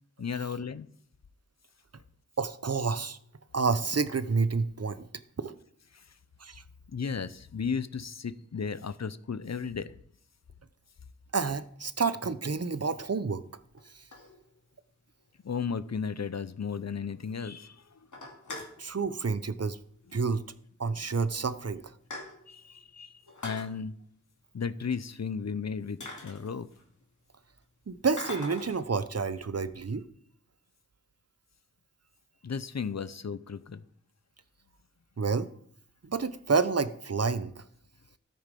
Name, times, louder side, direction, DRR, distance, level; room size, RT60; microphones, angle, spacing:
voice 1, 0.2-0.9 5.9-6.0 6.9-9.9 15.4-17.8 22.5-23.9 24.5-26.7 32.4-33.8, left 6 dB, 65° left, 15 dB, 0.7 m, -34 dB
voice 2, 2.4-3.2 3.5-5.1 5.4-5.5 6.4-6.6 11.3-13.4 13.9-14.1 18.8-19.8 20.1-20.4 20.8-21.9 27.9-30.1 35.2-35.5 36.0-37.6, right 4 dB, 55° right, 14 dB, 0.8 m, -29 dB
sound 1, 12.8-12.9 13.8-14.8 15.2-15.3 15.5-15.6 16.0-16.1 16.4-16.5 16.8-17.3 17.6-17.7 18.0-18.8 19.9-20.1 20.4-20.5 21.3-21.4 21.7-22.7 23.2-23.7 25.4-25.5 26.0-27.0 28.2-28.9, left 2 dB, 85° left, 2.3 m, -42 dB
13.0 x 8.8 x 5.3 m, 0.64 s
wide cardioid pair, 45°, 29 cm